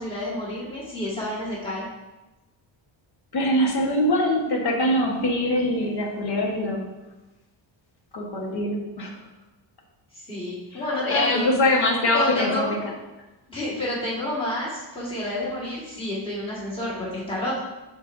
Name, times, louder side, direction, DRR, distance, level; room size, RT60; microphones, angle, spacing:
voice 1, 0.0-1.9 10.1-11.5 12.1-12.8 13.5-17.6, left 1 dB, 10° left, -7 dB, 1.8 m, -29 dB
voice 2, 3.3-6.9 8.1-9.2 10.7-12.8, left 1 dB, 55° left, 0 dB, 1.5 m, -23 dB
13.0 x 4.6 x 2.7 m, 1.1 s
wide cardioid pair, 160°, 46 cm